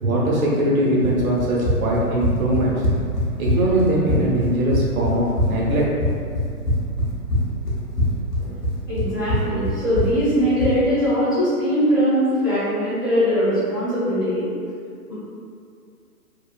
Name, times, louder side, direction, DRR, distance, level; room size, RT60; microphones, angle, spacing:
voice 1, 0.0-2.8 3.4-5.8, right 1 dB, 60° right, -4 dB, 0.9 m, -21 dB
Run, 1.4-10.8, left 1 dB, 85° left, 0.9 m, -23 dB
voice 2, 8.9-14.5 15.1-15.2, equal, 15° left, -17 dB, 0.4 m, -21 dB
2.8 x 2.0 x 2.4 m, 2.3 s
hypercardioid pair, 140°, 46 cm